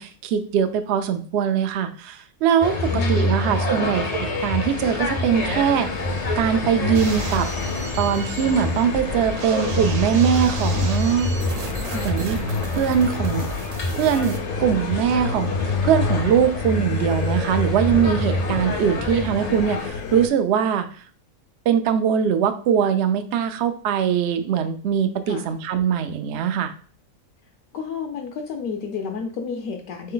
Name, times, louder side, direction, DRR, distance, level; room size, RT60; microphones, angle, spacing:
voice 1, 0.0-5.9 6.4-7.5 8.0-11.3 12.0-12.4 12.8-13.5 14.0-15.5 15.8-20.9 21.7-26.7, right 8 dB, 80° right, 8 dB, 0.6 m, -21 dB
sound 1, 2.6-19.9, left 1 dB, 55° left, 0.4 m, -27 dB
voice 2, 2.9-3.9 11.8-12.2 25.3-25.5 27.7-30.1, left 5 dB, 70° left, 3 dB, 1.0 m, -32 dB
sound 2, 4.8-20.3, left 5 dB, 90° left, 1.2 m, -30 dB
sound 3, 6.9-14.4, right 3 dB, 60° right, 0.9 m, -34 dB
3.9 x 3.3 x 3.8 m, 0.43 s
omnidirectional pair, 1.7 m